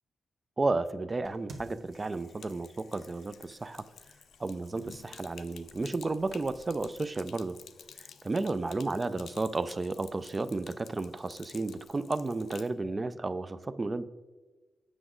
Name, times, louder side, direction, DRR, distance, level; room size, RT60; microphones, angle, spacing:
voice 1, 0.6-3.8 4.4-7.6 8.2-14.0, right 3 dB, 25° right, 14 dB, 0.3 m, -32 dB
sound 1, 1.2-7.0, right 2 dB, 65° right, 1.2 m, -55 dB
Sink (filling or washing), 1.8-12.7, left 7 dB, 75° left, 0.4 m, -52 dB
8.0 x 6.1 x 3.7 m, 1.3 s
wide cardioid pair, 115°, 0 cm